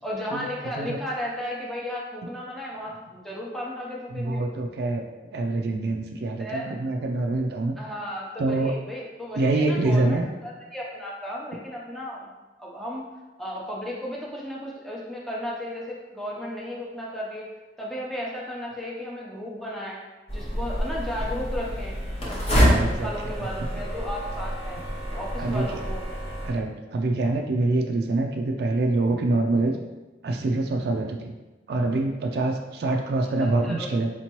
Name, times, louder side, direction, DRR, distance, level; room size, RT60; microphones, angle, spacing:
voice 1, 0.0-4.4 6.4-6.8 7.8-12.3 12.6-13.1 13.4-17.5 17.8-20.0 20.3-22.0 22.2-24.8 25.1-26.0 33.4-33.9, equal, ahead, -4 dB, 0.7 m, -34 dB
voice 2, 4.1-7.7 8.4-8.7 9.3-10.3 22.5-23.1 25.4-25.7 26.4-29.8 30.2-31.3 31.7-34.1, right 2 dB, 60° right, 2 dB, 0.3 m, -25 dB
sound 1, 20.3-26.5, equal, 35° left, 0.8 m, -27 dB
4.4 x 2.8 x 2.9 m, 1.1 s
head